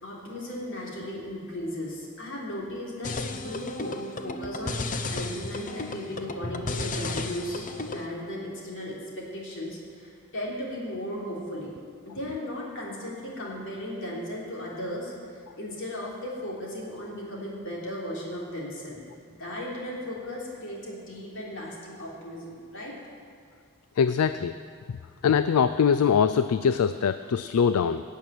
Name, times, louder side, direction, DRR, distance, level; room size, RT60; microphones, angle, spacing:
voice 1, 0.0-11.8 12.1-15.1 15.6-22.9, left 1 dB, 60° left, -4 dB, 3.5 m, -36 dB
sound 1, 3.0-8.1, left 3 dB, 35° left, 0.7 m, -33 dB
voice 2, 24.0-24.5 25.2-28.0, left 7 dB, 75° left, 12 dB, 0.4 m, -22 dB
17.5 x 6.5 x 9.3 m, 2.3 s
head